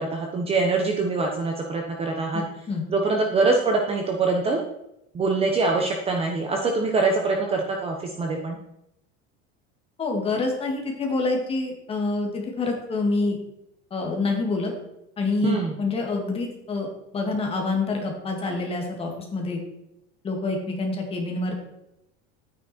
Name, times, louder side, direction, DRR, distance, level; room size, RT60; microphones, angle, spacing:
voice 1, 0.0-2.4 2.9-4.6 5.1-8.6 15.4-15.7, right 3 dB, 20° right, 2 dB, 1.1 m, -24 dB
voice 2, 2.3-2.8 10.0-13.4 13.9-14.7 15.2-19.6 20.2-21.5, left 3 dB, 20° left, 1 dB, 2.4 m, -27 dB
11.5 x 9.6 x 4.5 m, 0.83 s
cardioid pair, 175°, 30 cm